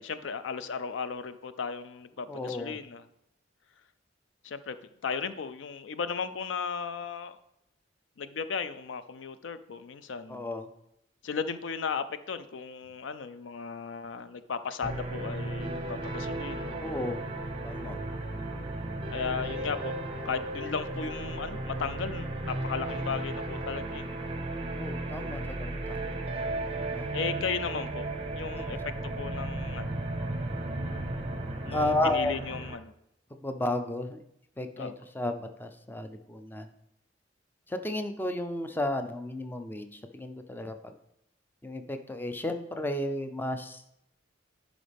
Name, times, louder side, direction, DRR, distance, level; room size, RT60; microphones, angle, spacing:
voice 1, 0.0-3.0 4.4-4.8 5.0-7.4 8.2-10.4 11.2-16.8 19.1-20.0 20.2-24.1 27.1-28.8 29.2-30.0 31.6-32.9 34.8-34.9, left 6 dB, 90° left, 13 dB, 0.5 m, -35 dB
voice 2, 2.3-2.8 10.3-10.7 16.8-17.2 17.6-18.0 24.7-26.1 26.8-27.1 27.4-27.6 31.7-32.4 33.4-34.2 34.6-36.7 37.7-40.9 41.6-43.8, left 1 dB, 10° left, 7 dB, 0.5 m, -33 dB
sound 1, 14.8-32.8, right 2 dB, 30° right, 0.8 m, -35 dB
11.0 x 5.1 x 3.4 m, 0.80 s
head